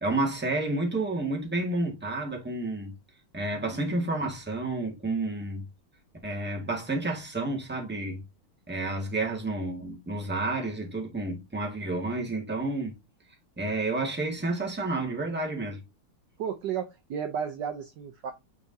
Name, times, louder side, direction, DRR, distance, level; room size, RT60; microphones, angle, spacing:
voice 1, 0.0-2.9 3.3-5.6 6.2-8.2 8.7-12.9 13.6-15.8, right 2 dB, 5° right, 1.5 m, -30 dB
voice 2, 16.4-18.3, right 8 dB, 65° right, 1.2 m, -33 dB
8.4 x 4.7 x 2.7 m
omnidirectional pair, 2.3 m